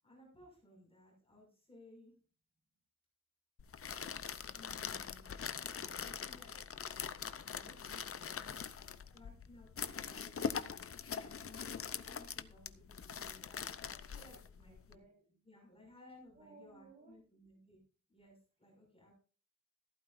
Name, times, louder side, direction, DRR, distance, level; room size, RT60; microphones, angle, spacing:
voice 1, 0.0-2.1 4.5-5.3 5.6-6.6 7.2-7.8 9.1-10.9 11.2-15.0 15.4-17.8 18.1-19.1, left 1 dB, 20° left, -2 dB, 6.1 m, -60 dB
sound 1, 3.6-14.9, left 7 dB, 50° left, 0.7 m, -43 dB
voice 2, 8.7-9.4 13.9-15.4 16.3-17.2, right 3 dB, 25° right, -3 dB, 5.0 m, -63 dB
15.0 x 13.0 x 2.6 m, 0.37 s
wide cardioid pair, 150°, 30 cm